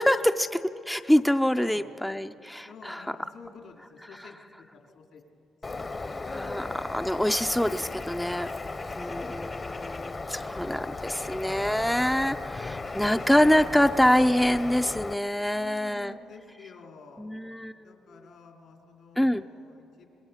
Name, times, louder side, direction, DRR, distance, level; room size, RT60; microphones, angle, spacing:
voice 1, 0.0-3.0 6.3-8.5 9.0-16.1 17.2-17.9 19.2-19.4, equal, 5° left, 8 dB, 0.4 m, -25 dB
voice 2, 1.6-1.9 2.7-5.9 6.4-7.0 15.5-17.4 17.7-20.1, left 5 dB, 70° left, 2 dB, 2.9 m, -51 dB
Bird, 5.6-15.1, left 3 dB, 30° left, 0.7 m, -36 dB
26.5 x 21.5 x 5.7 m, 2.8 s
cardioid pair, 90°, 0 cm